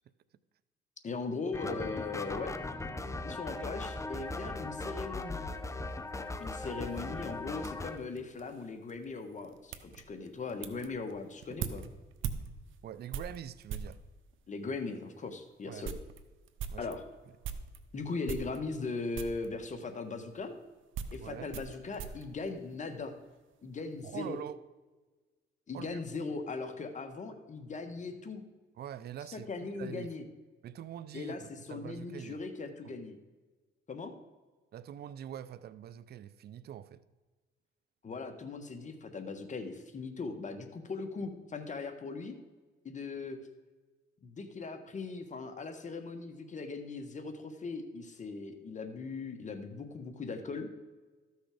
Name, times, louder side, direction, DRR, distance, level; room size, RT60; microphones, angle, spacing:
voice 1, 1.0-2.6 3.2-5.4 6.4-11.8 14.5-15.9 16.8-17.0 17.9-20.5 21.1-23.1 23.6-24.4 25.7-28.4 29.3-30.2 31.1-33.2 33.9-34.1 38.0-42.4 42.8-43.4 44.2-50.7, left 4 dB, 40° left, 1.4 m, -39 dB
sound 1, 1.5-8.0, left 2 dB, 15° left, 0.7 m, -39 dB
sound 2, 5.4-14.0 14.8-14.9 15.3-15.4 15.6-17.8 18.2-18.9 19.1-19.5 20.3-23.3 23.5-24.1, right 7 dB, 75° right, 0.8 m, -43 dB
voice 2, 12.8-14.0 15.6-15.9 16.7-16.9 21.2-21.5 24.0-24.6 25.7-26.0 28.8-30.1 30.6-32.4 32.8-32.9 34.7-37.0, right 10 dB, 55° right, 0.5 m, -44 dB
13.0 x 6.3 x 5.0 m
cardioid pair, 90°, 20 cm